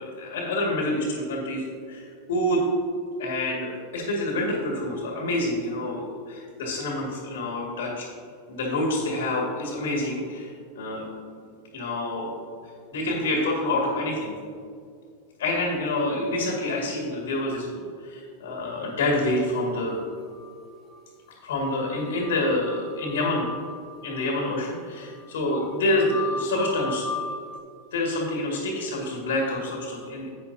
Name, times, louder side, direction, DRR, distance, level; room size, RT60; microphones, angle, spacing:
voice 1, 0.0-2.7 3.2-8.1 8.5-10.5 10.8-11.1 11.7-12.3 12.9-14.3 15.4-20.0 21.4-23.5 24.0-27.3 27.9-30.3, left 1 dB, 70° left, -1 dB, 2.0 m, -27 dB
sound 1, 20.0-21.0 21.3-21.4 21.6-27.6, left 4 dB, ahead, 1.9 m, -37 dB
11.0 x 8.1 x 2.8 m, 2.2 s
hypercardioid pair, 95°, 0 cm